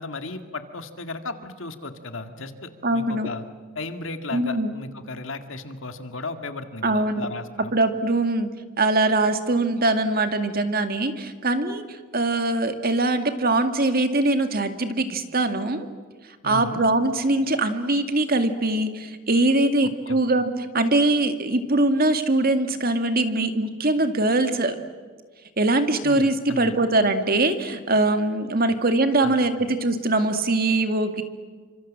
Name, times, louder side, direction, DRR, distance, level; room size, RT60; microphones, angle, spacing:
voice 1, 0.0-3.4 3.8-7.7 16.4-16.8 20.1-20.2 26.0-26.8 29.2-29.7, left 2 dB, 65° left, 7 dB, 2.2 m, -35 dB
voice 2, 2.8-3.3 4.3-4.7 6.8-7.3 7.7-8.5 8.8-15.9 16.4-24.8 25.6-31.2, right 2 dB, 45° right, 8 dB, 2.2 m, -22 dB
29.0 x 26.0 x 7.6 m, 1.5 s
head